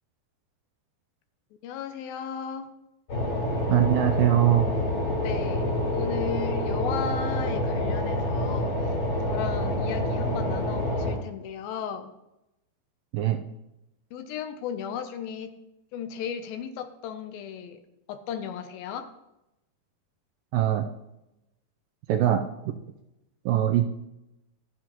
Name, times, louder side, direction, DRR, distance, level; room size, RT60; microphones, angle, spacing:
voice 1, 1.6-2.7 5.2-5.7 5.9-9.0 9.3-12.1 14.1-15.6 15.9-17.8 18.1-19.1, left 7 dB, 80° left, 8 dB, 2.4 m, -35 dB
sound 1, 3.1-11.1, left 1 dB, 40° left, 4.2 m, -27 dB
voice 2, 3.7-4.7 13.1-13.4 20.5-20.8 22.1-22.5 23.5-23.9, right 12 dB, 80° right, 6 dB, 2.1 m, -22 dB
12.5 x 9.7 x 3.0 m, 0.90 s
omnidirectional pair, 4.4 m